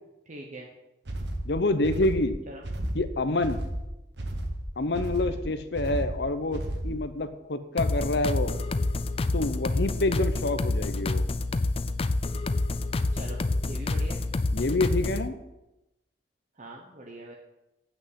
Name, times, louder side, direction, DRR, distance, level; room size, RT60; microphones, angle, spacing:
voice 1, 0.3-0.7 2.5-2.6 5.2-5.4 13.1-14.2 16.5-17.3, right 1 dB, 40° right, -1 dB, 1.1 m, -43 dB
sound 1, 1.1-7.1, right 1 dB, 70° right, 1.3 m, -33 dB
voice 2, 1.4-2.4 2.9-3.6 4.8-8.5 9.3-11.2 14.5-15.3, left 2 dB, 65° left, 10 dB, 0.8 m, -27 dB
sound 2, 7.8-15.3, left 2 dB, 30° left, 0.4 m, -28 dB
8.0 x 6.4 x 8.0 m, 0.95 s
head